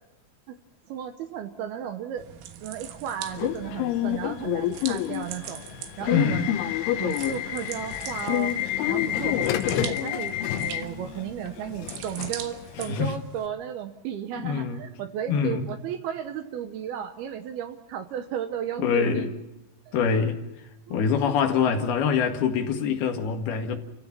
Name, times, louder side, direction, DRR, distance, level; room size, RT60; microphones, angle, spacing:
voice 1, 0.9-2.3 2.6-5.6 6.0-6.6 7.0-8.6 8.9-19.3 19.9-20.0 20.9-21.0 21.3-21.4, right 9 dB, 75° right, 2.4 m, -34 dB
sound 1, 2.2-13.5, right 10 dB, 90° right, 3.9 m, -42 dB
Subway metro underground / Alarm, 3.3-13.1, left 12 dB, 90° left, 3.5 m, -28 dB
voice 2, 6.1-6.5 12.9-13.1 14.4-14.8 15.3-15.7 18.8-19.3 19.9-20.4 20.9-23.8, left 6 dB, 60° left, 3.5 m, -24 dB
29.0 x 16.0 x 6.0 m
omnidirectional pair, 5.3 m